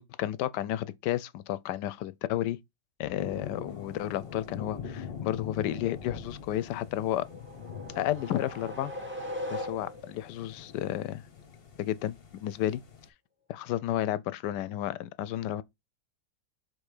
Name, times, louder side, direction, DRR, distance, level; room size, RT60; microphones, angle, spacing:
voice 1, 0.0-2.6 3.0-7.3 8.0-8.9 9.5-11.2 11.8-12.8 13.5-15.6, left 13 dB, 80° left, 1.2 m, -32 dB
sound 1, 3.2-13.1, left 6 dB, 40° left, 1.1 m, -44 dB
sound 2, 7.2-10.2, left 1 dB, 5° right, 1.2 m, -39 dB
5.4 x 3.8 x 4.8 m
omnidirectional pair, 1.9 m